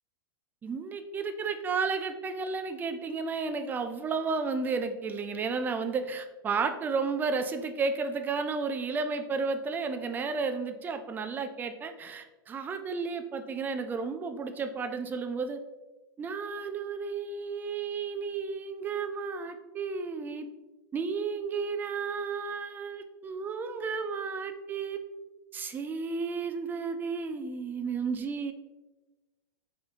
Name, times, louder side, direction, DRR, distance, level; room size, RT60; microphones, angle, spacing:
voice 1, 0.6-15.6 16.2-20.5 20.9-25.0 25.5-28.5, right 4 dB, 15° right, 7 dB, 0.4 m, -32 dB
3.7 x 3.5 x 3.5 m, 1.1 s
hypercardioid pair, 115°, 12 cm